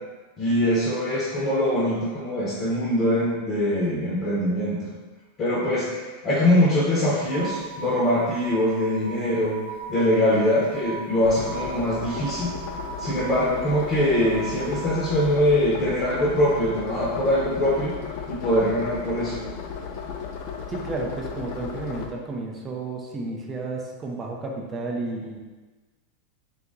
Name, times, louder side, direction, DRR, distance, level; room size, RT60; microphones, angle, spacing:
voice 1, 0.4-4.9 5.4-9.6 9.9-12.5 13.0-17.9 18.3-19.3, left 1 dB, 30° left, -6 dB, 0.9 m, -23 dB
sound 1, 7.2-15.3, right 5 dB, 65° right, 0.7 m, -38 dB
sound 2, 11.2-22.1, left 6 dB, 50° left, 0.5 m, -35 dB
voice 2, 20.7-25.4, right 3 dB, 20° right, 0 dB, 0.6 m, -32 dB
4.0 x 2.8 x 3.6 m, 1.3 s
supercardioid pair, 145°, 0 cm